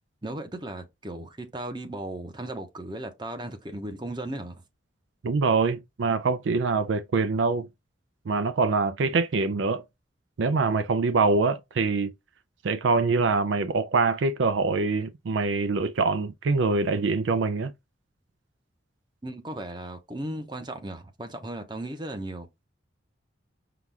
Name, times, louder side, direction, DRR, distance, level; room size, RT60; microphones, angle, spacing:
voice 1, 0.2-4.6 19.2-22.5, right 1 dB, 25° right, 0.8 m, -36 dB
voice 2, 5.2-7.7 8.3-9.8 10.4-12.1 12.6-17.7, right 4 dB, 75° right, 0.4 m, -24 dB
5.8 x 2.4 x 3.4 m
head